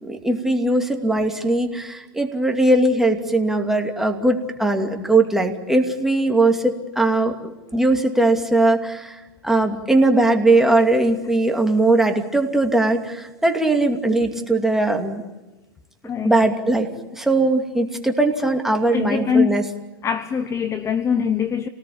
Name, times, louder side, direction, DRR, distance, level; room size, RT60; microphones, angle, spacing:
voice 1, 0.0-15.2 16.2-16.9 17.1-19.6 21.1-21.2, right 2 dB, 5° right, 2.6 m, -20 dB
voice 2, 16.0-16.4 18.9-19.7 20.0-21.7, left 6 dB, 20° left, 0.9 m, -22 dB
28.0 x 19.0 x 8.7 m
hypercardioid pair, 125°, 13 cm